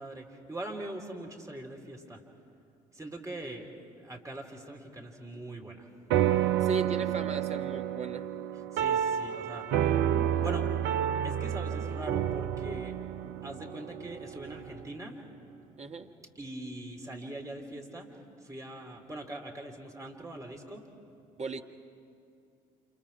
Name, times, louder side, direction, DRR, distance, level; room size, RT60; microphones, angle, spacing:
voice 1, 0.0-2.2 2.9-3.7 4.0-5.9 8.7-9.7 10.3-10.7 11.2-13.0 13.4-15.2 16.4-20.9, right 1 dB, 15° right, 1 dB, 3.5 m, -42 dB
sound 1, 6.1-14.8, right 10 dB, 55° right, 0.7 m, -30 dB
voice 2, 6.6-8.3 15.8-16.1 21.4-21.6, right 3 dB, 30° right, 5 dB, 1.5 m, -37 dB
29.5 x 28.0 x 4.8 m, 2.5 s
figure-of-eight pair, 50°, 21 cm